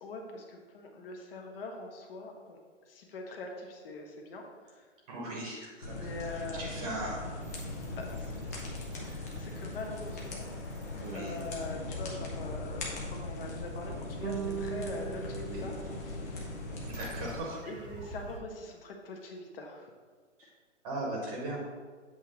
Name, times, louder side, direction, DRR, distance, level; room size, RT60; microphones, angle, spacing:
voice 1, 0.0-2.6 2.9-4.9 5.9-6.7 7.9-8.7 9.3-10.5 11.1-16.5 17.6-19.9, left 2 dB, 50° left, 1 dB, 1.2 m, -43 dB
voice 2, 5.1-6.0 6.6-7.2 11.0-11.3 15.4-15.6 16.9-17.6 20.4-20.5 20.8-21.6, right 1 dB, 30° right, -2 dB, 1.1 m, -38 dB
sound 1, 5.8-17.4, left 2 dB, 15° left, 0.4 m, -39 dB
sound 2, 7.4-12.4 16.8-18.4, right 3 dB, 45° right, 1.0 m, -52 dB
sound 3, 14.2-16.8, right 8 dB, 70° right, 0.6 m, -39 dB
7.9 x 3.1 x 5.0 m, 1.5 s
hypercardioid pair, 150°, 37 cm